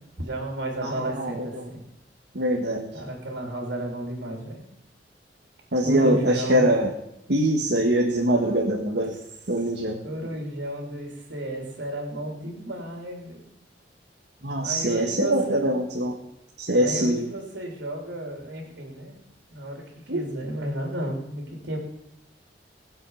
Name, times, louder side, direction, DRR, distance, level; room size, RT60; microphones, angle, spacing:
voice 1, 0.2-1.8 2.9-4.6 5.8-6.7 8.3-8.6 10.0-13.4 14.6-15.7 16.8-19.1 19.5-21.8, right 1 dB, 85° right, 1 dB, 3.3 m, -33 dB
voice 2, 0.8-1.5 2.3-2.9 5.7-6.9 7.3-9.2 9.5-10.0 14.4-16.2 16.6-17.3 20.1-20.2, right 1 dB, 65° right, 1 dB, 1.7 m, -23 dB
21.0 x 7.7 x 5.7 m, 0.85 s
head